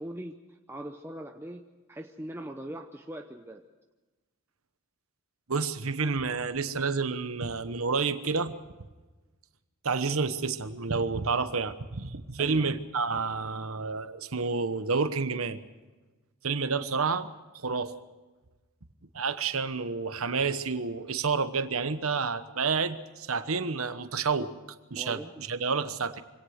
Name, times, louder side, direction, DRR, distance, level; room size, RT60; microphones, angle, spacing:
voice 1, 0.0-3.6 12.4-12.6 25.0-25.4, right 1 dB, 10° right, 4 dB, 0.8 m, -41 dB
voice 2, 5.5-8.5 9.8-15.6 16.4-17.3 17.6-17.9 19.1-24.5 24.9-26.2, right 4 dB, 75° right, 11 dB, 1.1 m, -29 dB
24.5 x 17.5 x 6.5 m, 1.2 s
head